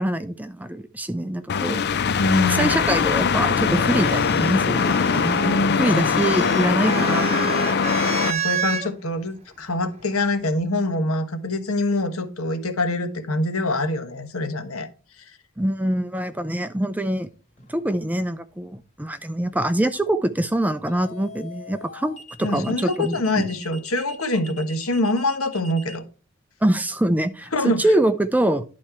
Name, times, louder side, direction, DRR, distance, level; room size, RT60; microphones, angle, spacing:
voice 1, 0.0-2.0 2.5-7.6 15.6-17.3 17.7-23.5 26.6-27.5 27.8-28.6, right 1 dB, 5° right, 11 dB, 0.5 m, -24 dB
sound 1, 1.5-8.3, left 6 dB, 50° left, 0.5 m, -21 dB
voice 2, 2.2-2.7 5.9-6.1 8.2-14.9 22.4-26.0 27.5-27.8, left 2 dB, 75° left, 7 dB, 1.4 m, -24 dB
sound 2, 2.3-8.9 10.0-10.6, right 8 dB, 30° right, 0.9 m, -32 dB
sound 3, 17.6-17.9 20.9-26.0, left 1 dB, 35° left, 1.4 m, -42 dB
11.0 x 4.3 x 4.5 m, 0.36 s
head